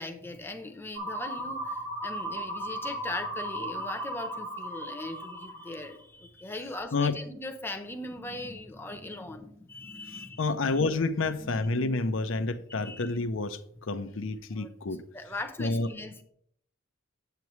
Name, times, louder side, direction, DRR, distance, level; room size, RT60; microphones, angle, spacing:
voice 1, 0.0-10.6 11.3-11.7 12.8-13.2 14.6-14.7 15.1-16.2, left 2 dB, 10° left, 0.8 m, -40 dB
sound 1, 0.9-6.0, right 1 dB, 65° right, 1.9 m, -36 dB
voice 2, 10.4-15.0 15.6-15.9, left 3 dB, 65° left, 0.6 m, -29 dB
9.3 x 8.2 x 3.1 m
head